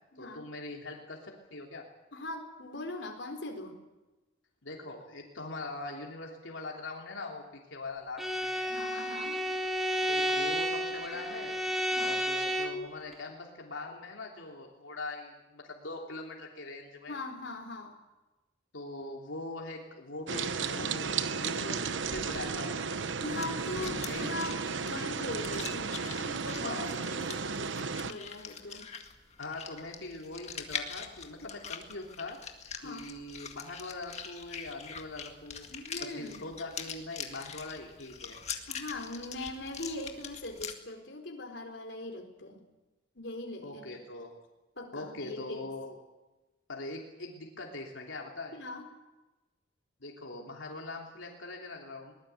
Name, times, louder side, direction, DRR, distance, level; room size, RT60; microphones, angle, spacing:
voice 1, 0.2-1.8 4.6-7.4 7.7-8.7 10.1-11.6 11.9-17.2 18.7-23.1 23.8-24.3 26.6-26.9 28.7-28.8 29.4-32.4 32.8-35.6 36.0-38.4 43.6-44.3 44.9-46.0 46.7-48.6 50.0-52.1, left 2 dB, 85° left, 0 dB, 3.2 m, -42 dB
voice 2, 2.1-3.8 8.7-9.4 12.0-12.2 17.1-18.0 23.2-28.9 32.8-33.1 35.7-36.5 38.7-42.6 43.2-43.8 44.8-45.6 48.5-48.8, left 2 dB, 65° left, 2 dB, 4.1 m, -41 dB
Bowed string instrument, 8.2-12.9, equal, ahead, 2.0 m, -31 dB
sound 1, 20.3-28.1, right 5 dB, 75° right, 1.0 m, -34 dB
sound 2, 23.2-40.7, left 7 dB, 35° left, 2.0 m, -44 dB
22.5 x 19.5 x 8.3 m, 1.1 s
head